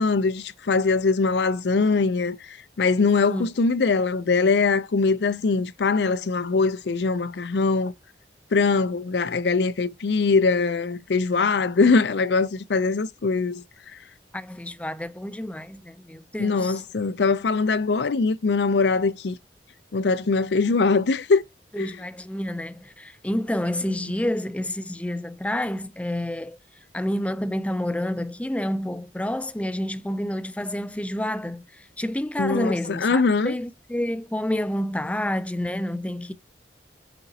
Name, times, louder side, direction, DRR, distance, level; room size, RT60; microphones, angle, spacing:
voice 1, 0.0-7.9 8.5-13.6 16.4-19.4 19.9-21.4 21.8-21.9 32.4-33.6, left 4 dB, 75° left, 0.5 m, -22 dB
voice 2, 14.3-16.8 21.7-26.6 26.9-36.3, left 1 dB, 10° left, 0.4 m, -29 dB
6.8 x 5.0 x 2.8 m
head